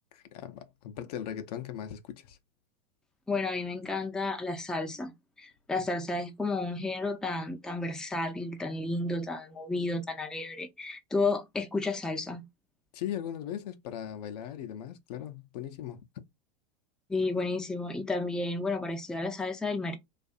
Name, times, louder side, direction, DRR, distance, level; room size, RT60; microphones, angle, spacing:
voice 1, 0.1-2.4 12.9-16.0, left 10 dB, 70° left, 0.6 m, -38 dB
voice 2, 3.3-5.1 5.4-12.4 17.1-20.0, left 3 dB, 5° left, 0.4 m, -32 dB
2.6 x 2.4 x 2.4 m
hypercardioid pair, 115°, 21 cm